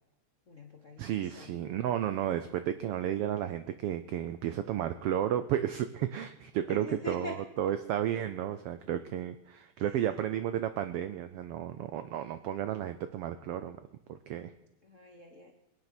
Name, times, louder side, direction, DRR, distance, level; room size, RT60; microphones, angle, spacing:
voice 1, 0.5-1.0 1.3-1.7 6.7-7.3 14.8-15.5, left 3 dB, 70° left, 3 dB, 0.7 m, -43 dB
voice 2, 1.0-13.8 14.1-14.5, right 11 dB, 80° right, 11 dB, 1.3 m, -33 dB
23.0 x 9.7 x 6.0 m, 0.90 s
omnidirectional pair, 3.3 m